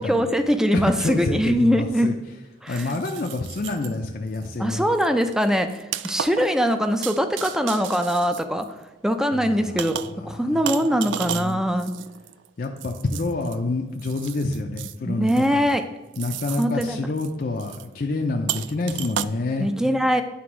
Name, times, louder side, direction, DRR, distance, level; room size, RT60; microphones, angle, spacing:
voice 1, 0.0-2.2 2.6-3.0 4.6-8.7 9.0-11.9 15.0-15.8 16.6-17.0 19.6-20.2, equal, 5° right, 8 dB, 0.4 m, -22 dB
voice 2, 0.7-2.1 2.7-4.9 9.3-10.0 10.5-10.9 11.2-11.7 12.6-15.6 16.2-19.7, left 2 dB, 50° left, 1 dB, 0.5 m, -28 dB
sound 1, 1.2-1.3 2.7-4.0 4.3-4.6 4.9-9.1 9.8-10.3 10.7-13.6 14.0-15.0 15.3-15.7 16.1-16.9 17.2-17.3 17.6-17.9 18.5-19.2, right 11 dB, 75° right, 0.3 m, -34 dB
9.5 x 3.4 x 6.0 m, 1.1 s
head